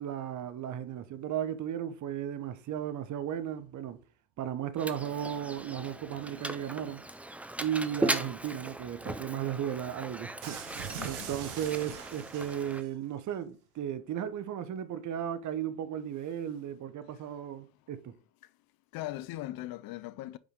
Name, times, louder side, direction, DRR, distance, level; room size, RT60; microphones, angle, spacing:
voice 1, 0.0-4.0 4.4-7.1 7.6-10.6 11.0-18.2, right 10 dB, 45° right, 0.9 m, -35 dB
Mechanisms, 4.8-12.8, right 1 dB, 5° right, 0.4 m, -38 dB
sound 1, 10.4-12.9, right 9 dB, 80° right, 1.3 m, -42 dB
voice 2, 11.0-11.3 17.1-17.4 18.4-18.6 18.9-20.4, left 15 dB, 55° left, 0.6 m, -40 dB
5.1 x 4.9 x 3.7 m
supercardioid pair, 90°, 43 cm